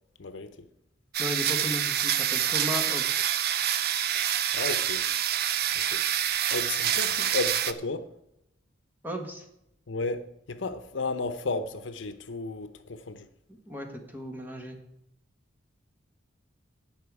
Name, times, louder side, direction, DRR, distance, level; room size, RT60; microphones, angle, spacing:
voice 1, 0.2-0.5 4.5-5.0 5.9-6.0 6.5-8.1 9.9-13.2, left 3 dB, 75° left, 0.8 m, -33 dB
sound 1, 1.1-7.7, right 10 dB, 55° right, 0.5 m, -27 dB
voice 2, 1.2-3.3 9.0-9.4 13.5-14.8, left 1 dB, 10° right, 1.5 m, -36 dB
16.5 x 5.6 x 4.8 m
head